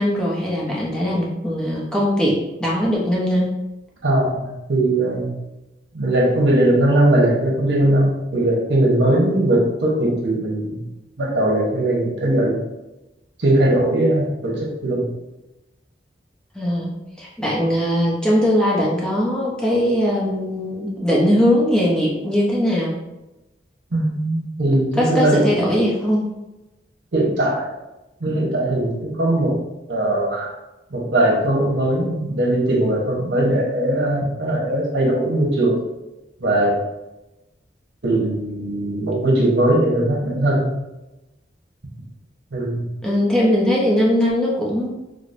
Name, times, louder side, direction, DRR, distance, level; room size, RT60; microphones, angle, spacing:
voice 1, 0.0-3.5 16.5-22.9 25.0-26.3 43.0-44.9, equal, 5° left, -5 dB, 0.6 m, -20 dB
voice 2, 4.0-5.3 5.9-10.8 11.2-12.6 13.4-15.0 23.9-25.5 27.1-27.7 28.2-29.5 29.9-30.5 30.9-35.8 36.4-36.8 38.0-40.7 42.5-42.9, right 1 dB, 80° right, -2 dB, 0.9 m, -19 dB
4.8 x 2.0 x 2.6 m, 0.99 s
head